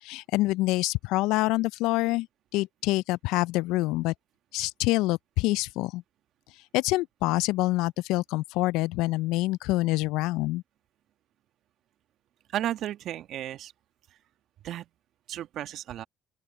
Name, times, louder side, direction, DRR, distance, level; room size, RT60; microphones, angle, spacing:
voice 1, 0.0-2.3 2.5-4.1 4.5-6.0 6.7-10.6, left 19 dB, 75° left, 0.5 m, -26 dB
voice 2, 12.5-13.7 14.6-14.9 15.3-16.0, right 12 dB, 65° right, 1.7 m, -33 dB
open air
hypercardioid pair, 55°, 0 cm